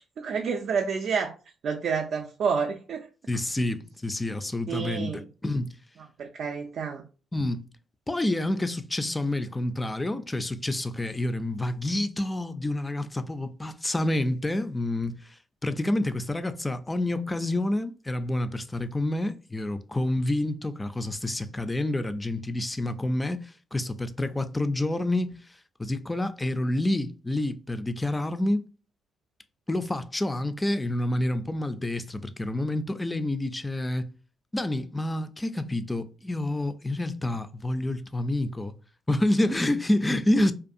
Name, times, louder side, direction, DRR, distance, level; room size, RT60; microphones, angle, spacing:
voice 1, 0.0-1.3 1.6-3.1 4.7-5.2 6.2-7.0, right 6 dB, 65° right, 0.3 m, -29 dB
voice 2, 3.3-5.7 7.3-7.6 8.1-15.3 15.6-25.4 25.8-28.6 29.7-34.1 34.5-38.7 39.1-40.5, left 1 dB, 15° left, 0.3 m, -28 dB
2.6 x 2.3 x 2.5 m
cardioid pair, 90°, 0 cm